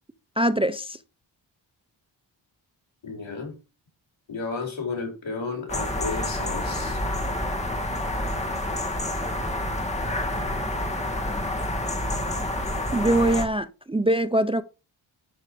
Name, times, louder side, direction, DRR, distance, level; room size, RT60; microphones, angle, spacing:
voice 1, 0.4-1.0 12.9-14.6, right 1 dB, 10° right, 0.5 m, -23 dB
voice 2, 3.0-3.5 4.3-7.0, left 4 dB, 70° left, 5.3 m, -33 dB
sound 1, 5.7-13.5, left 1 dB, 15° left, 2.1 m, -28 dB
11.5 x 6.1 x 4.8 m
wide cardioid pair, 180°, 48 cm